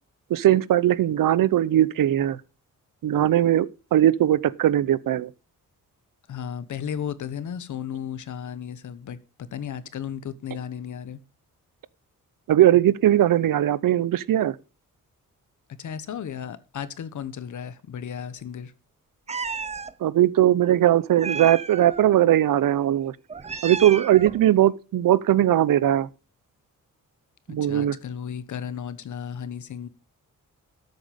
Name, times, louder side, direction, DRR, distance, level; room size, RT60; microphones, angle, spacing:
voice 1, 0.3-2.4 3.0-5.3 12.5-14.6 20.0-23.1 23.6-26.1 27.5-27.9, right 12 dB, 85° right, 0.7 m, -19 dB
voice 2, 6.3-11.2 15.8-18.7 27.5-29.9, left 8 dB, 65° left, 1.1 m, -34 dB
Meow, 19.3-19.9 21.2-22.1 23.3-24.4, right 5 dB, 20° right, 0.5 m, -32 dB
13.0 x 8.1 x 5.1 m
wide cardioid pair, 180°, 32 cm